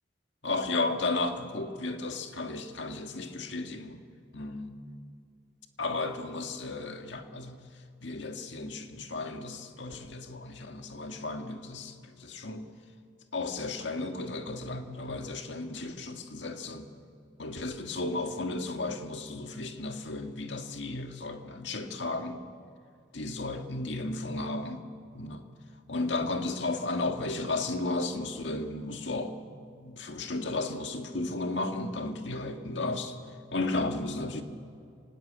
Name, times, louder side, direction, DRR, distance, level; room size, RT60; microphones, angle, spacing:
voice 1, 0.4-4.0 4.3-4.8 5.8-7.6 8.0-12.7 13.3-16.9 17.4-22.4 23.1-24.8 25.1-25.4 25.9-29.3 29.8-33.1 33.5-34.4, left 2 dB, 75° left, 5 dB, 1.7 m, -34 dB
24.5 x 19.5 x 8.6 m, 2.5 s
head